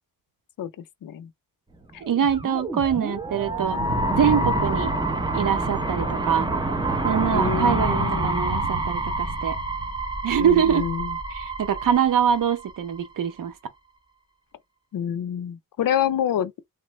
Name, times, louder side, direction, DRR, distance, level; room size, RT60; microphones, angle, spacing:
sound 1, 2.0-13.0, right 2 dB, 10° right, 0.8 m, -27 dB
voice 1, 2.0-3.8 4.1-4.9 5.3-6.5 7.0-9.6 10.2-10.9 11.3-13.5, right 8 dB, 60° right, 0.7 m, -24 dB
voice 2, 7.3-8.4 10.4-11.2 14.9-16.5, left 9 dB, 65° left, 0.5 m, -27 dB
3.1 x 2.0 x 3.1 m
cardioid pair, 80°, 37 cm